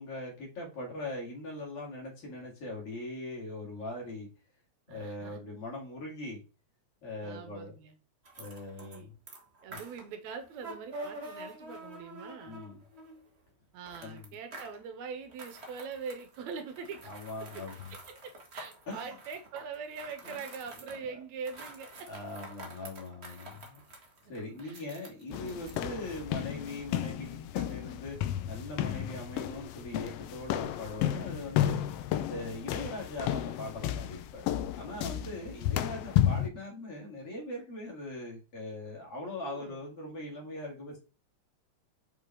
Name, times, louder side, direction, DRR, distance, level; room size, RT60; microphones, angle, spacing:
voice 1, 0.0-4.3 4.9-6.4 7.0-7.8 8.4-9.1 9.7-9.8 12.5-12.8 14.0-14.3 17.1-17.9 18.9-19.1 20.2-20.4 21.1-21.2 22.1-24.0 24.3-28.2 28.5-31.8 32.3-41.0, left 1 dB, 55° left, 3.0 m, -41 dB
voice 2, 4.9-5.4 7.2-8.0 8.8-9.1 9.6-12.6 13.7-17.1 17.4-22.1 23.3-23.4 24.3-24.8 39.4-39.8, right 5 dB, 80° right, 2.1 m, -43 dB
sound 1, 8.2-9.0 9.3-13.3 13.8-14.8 15.3-21.1 21.4-25.8, right 1 dB, 40° right, 1.0 m, -48 dB
sound 2, 25.3-36.5, left 11 dB, 80° left, 1.4 m, -32 dB
6.0 x 5.3 x 4.5 m
omnidirectional pair, 3.3 m